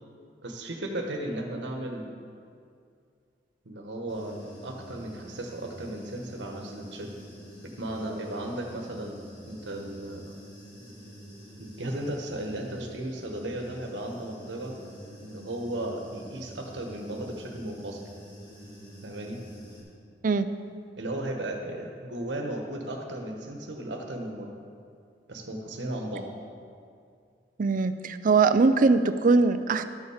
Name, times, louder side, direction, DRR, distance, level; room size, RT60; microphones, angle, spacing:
voice 1, 0.4-2.1 3.6-7.1 7.8-9.2 9.5-10.3 11.6-14.8 15.2-18.0 19.0-19.4 21.0-24.5 25.3-26.3, right 1 dB, 75° right, 2 dB, 1.2 m, -35 dB
Human voice / Buzz, 4.1-19.8, equal, 25° left, 2.2 m, -47 dB
voice 2, 27.6-29.8, right 4 dB, 50° right, 11 dB, 0.4 m, -21 dB
12.5 x 7.1 x 5.0 m, 2.3 s
head